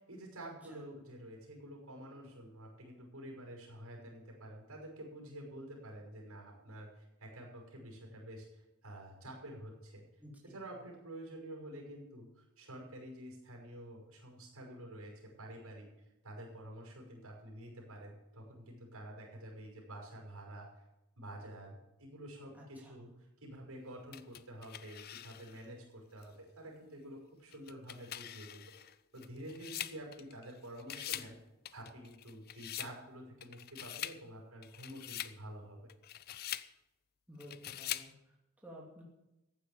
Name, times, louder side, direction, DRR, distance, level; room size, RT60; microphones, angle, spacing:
voice 1, 0.0-10.0 10.4-15.9 16.2-20.7 21.2-22.5 22.9-23.1 23.4-31.4 31.7-35.9, right 1 dB, 75° right, 0 dB, 5.6 m, -49 dB
voice 2, 10.2-10.6 22.5-23.1 37.3-39.0, equal, 5° right, -3 dB, 2.6 m, -54 dB
sound 1, 24.1-25.7 26.2-26.3 27.5-30.5 30.8-31.3 31.7-33.0 33.4-34.2 34.6-35.4 35.9-36.7 37.4-38.1, left 12 dB, 45° left, 0.5 m, -44 dB
15.0 x 9.3 x 7.0 m, 0.96 s
head